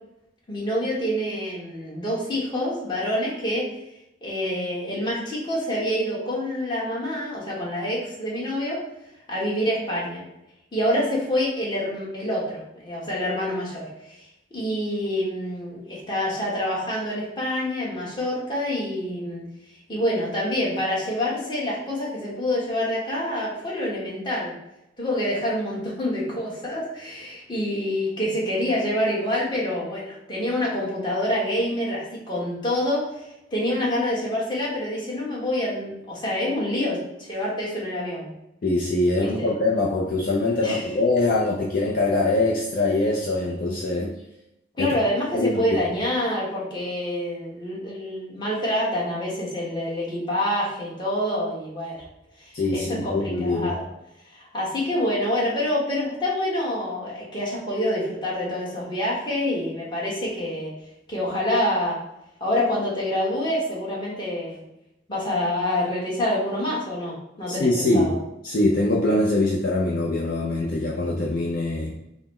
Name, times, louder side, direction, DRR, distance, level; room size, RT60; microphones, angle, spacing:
voice 1, 0.5-3.7 4.2-8.8 9.3-10.2 10.7-14.2 14.5-19.4 19.9-24.5 25.0-38.3 39.2-39.5 40.6-40.8 44.8-52.0 52.4-53.9 54.3-60.7 61.1-62.0 62.4-64.6 65.1-68.1, left 1 dB, 25° left, -5 dB, 1.2 m, -27 dB
voice 2, 38.6-44.1 44.8-44.9 45.3-45.6 52.5-53.7 67.5-68.1 68.4-71.9, left 2 dB, 50° left, -3 dB, 0.4 m, -23 dB
3.9 x 2.0 x 4.1 m, 0.86 s
head